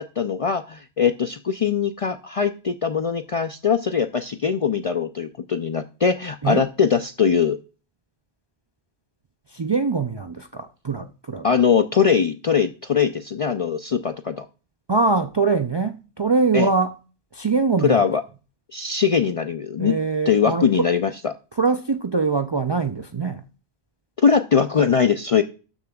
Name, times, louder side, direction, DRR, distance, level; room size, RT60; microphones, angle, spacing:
voice 1, 0.0-7.6 11.4-14.5 16.5-16.7 17.8-18.2 18.7-19.9 20.3-21.3 24.2-25.4, left 6 dB, 50° left, 0.4 m, -21 dB
voice 2, 9.5-11.5 14.9-17.0 17.3-18.0 19.8-20.9 21.6-23.4, right 4 dB, 40° right, 0.3 m, -23 dB
12.5 x 6.9 x 2.3 m
omnidirectional pair, 1.0 m